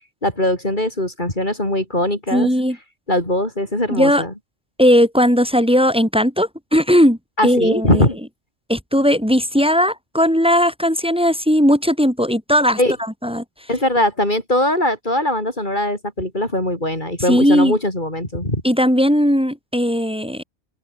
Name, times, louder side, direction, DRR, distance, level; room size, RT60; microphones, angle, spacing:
voice 1, 0.2-2.5 3.1-4.3 7.4-8.2 12.8-13.0 13.7-18.6, left 1 dB, 40° left, 6.3 m, -21 dB
voice 2, 2.3-2.8 3.9-4.2 4.8-8.1 8.7-12.8 13.2-13.4 17.3-17.7 18.6-20.4, equal, 5° right, 6.7 m, -17 dB
open air
omnidirectional pair, 1.2 m